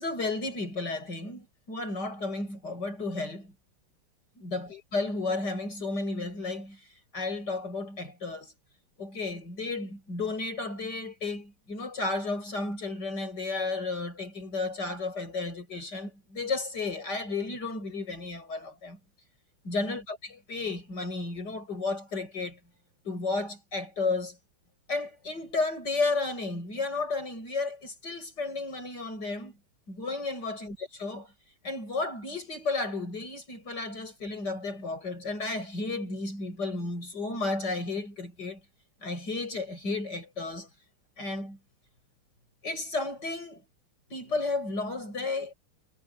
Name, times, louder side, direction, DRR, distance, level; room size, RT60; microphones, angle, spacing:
voice 1, 0.0-3.5 4.4-6.8 7.1-8.5 9.0-19.0 19.6-22.6 23.0-24.4 24.9-29.6 29.9-31.3 31.6-38.6 39.0-40.7 41.2-41.6 42.6-43.6 44.1-45.5, left 3 dB, 50° left, 8.3 m, -33 dB
omnidirectional pair, 2.3 m